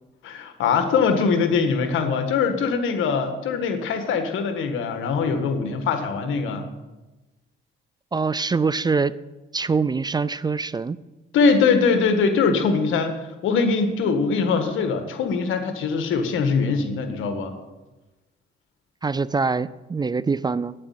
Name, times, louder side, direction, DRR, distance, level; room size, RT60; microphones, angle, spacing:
voice 1, 0.2-6.7 11.3-17.5, left 5 dB, 85° left, 8 dB, 1.7 m, -22 dB
voice 2, 8.1-9.1 9.5-11.0 19.0-20.7, right 4 dB, 20° right, 18 dB, 0.4 m, -24 dB
9.4 x 8.8 x 9.1 m, 1.1 s
cardioid pair, 90°, 20 cm